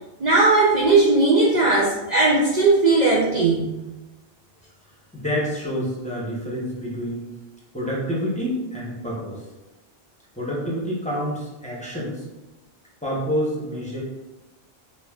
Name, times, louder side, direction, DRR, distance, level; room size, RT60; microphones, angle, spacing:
voice 1, 0.2-3.6, right 3 dB, 50° right, -5 dB, 0.6 m, -18 dB
voice 2, 5.1-7.2 7.7-9.4 10.4-12.2 13.0-14.0, equal, 10° left, -6 dB, 0.8 m, -28 dB
5.1 x 2.5 x 2.4 m, 1.0 s
omnidirectional pair, 1.1 m